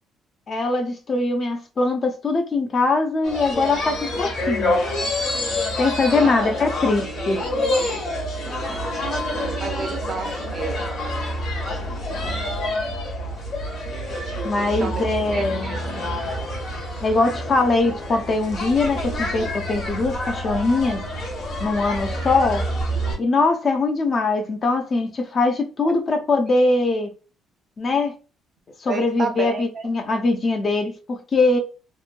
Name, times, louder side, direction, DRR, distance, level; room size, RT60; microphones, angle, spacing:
voice 1, 0.5-4.7 5.8-7.4 14.4-15.7 17.0-21.0 21.6-22.6 23.2-27.1 27.8-28.1 28.8-31.6, left 3 dB, 30° left, 0.4 m, -22 dB
sound 1, 3.2-23.2, left 1 dB, 50° left, 1.0 m, -27 dB
voice 2, 6.2-6.5 8.7-8.8 9.6-11.0 14.5-15.1 15.3-16.1 25.8-25.9 28.9-29.9, right 4 dB, 35° right, 0.5 m, -31 dB
3.0 x 2.1 x 2.4 m
cardioid pair, 160°, 0 cm